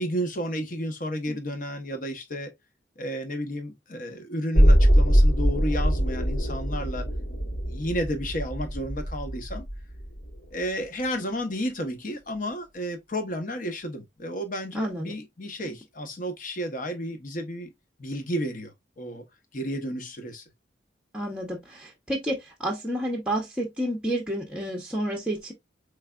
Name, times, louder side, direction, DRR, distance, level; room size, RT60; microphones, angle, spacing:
voice 1, 0.0-2.5 3.0-7.1 7.6-9.7 10.5-17.7 18.0-19.3 19.5-20.4, equal, 45° left, 0.8 m, -32 dB
sound 1, 4.5-10.5 10.8-10.9, equal, 85° left, 2.1 m, -22 dB
voice 2, 14.7-15.1 21.1-25.5, right 1 dB, 5° right, 0.7 m, -30 dB
4.7 x 3.3 x 2.3 m
head